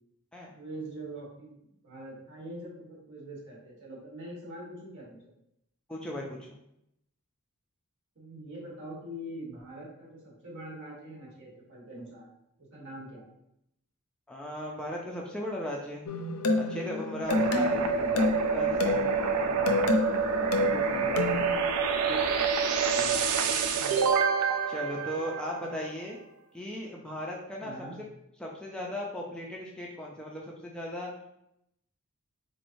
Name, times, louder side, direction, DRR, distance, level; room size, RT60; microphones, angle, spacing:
voice 1, 0.6-5.2 8.1-12.3 12.6-13.3 17.3-18.4 19.3-20.0 20.5-24.1 27.6-28.0, right 1 dB, 60° right, -4 dB, 1.4 m, -44 dB
voice 2, 5.9-6.6 14.3-16.0 16.6-17.8 18.1-19.1 24.7-26.2 26.5-27.7 28.4-31.1, left 1 dB, 5° left, -2 dB, 0.4 m, -37 dB
sound 1, 16.1-21.5, left 3 dB, 90° left, 0.5 m, -29 dB
sound 2, 17.3-25.9, right 6 dB, 85° right, 0.4 m, -27 dB
4.1 x 3.1 x 2.6 m, 0.79 s
head